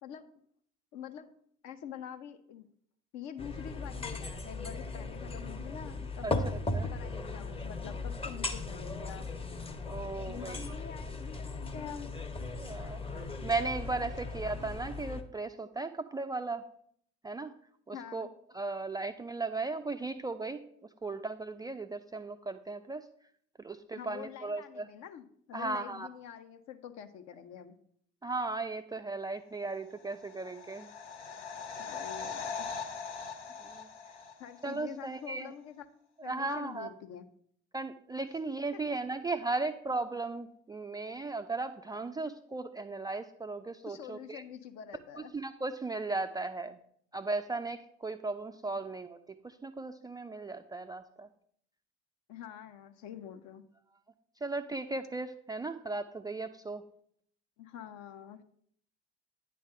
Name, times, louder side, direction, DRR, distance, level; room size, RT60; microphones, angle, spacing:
voice 1, 0.9-1.3 1.6-2.7 3.1-6.6 6.9-9.3 10.3-12.1 17.9-18.3 23.9-27.8 31.8-32.7 34.4-35.8 36.2-37.3 43.8-45.3 52.3-53.6 57.6-58.4, left 9 dB, 50° left, 8 dB, 0.8 m, -46 dB
sound 1, 3.4-15.2, left 2 dB, 15° left, 0.8 m, -38 dB
voice 2, 9.9-10.8 12.5-16.6 17.2-17.5 17.9-18.3 18.5-20.6 21.0-23.0 23.6-24.9 25.5-26.1 28.2-30.9 33.6-33.9 34.6-35.5 36.2-36.9 37.7-44.4 45.3-46.8 47.1-49.2 49.4-51.3 54.4-56.8, right 3 dB, 10° right, 8 dB, 0.4 m, -36 dB
sound 2, 30.0-34.8 35.1-35.2, left 5 dB, 80° left, 0.9 m, -41 dB
9.4 x 3.3 x 6.5 m, 0.65 s
figure-of-eight pair, 60°, 34 cm